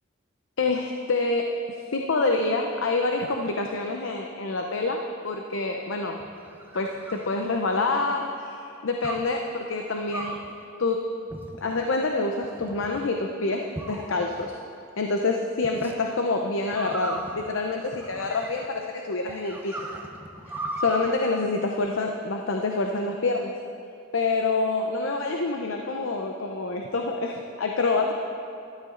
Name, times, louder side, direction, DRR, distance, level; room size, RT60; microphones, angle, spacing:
voice 1, 0.6-1.6 1.9-6.2 6.7-10.4 10.8-11.1 11.6-14.6 15.0-19.8 20.8-23.6 24.1-28.1, left 3 dB, 75° left, 3 dB, 0.7 m, -27 dB
sound 1, 6.2-8.0 9.0-9.4 10.1-10.5 11.3-11.8 12.4-13.0 13.7-14.5 15.6-15.9 16.7-18.8 19.3-21.1, right 2 dB, 10° right, 0.7 m, -37 dB
13.0 x 11.5 x 3.8 m, 2.7 s
head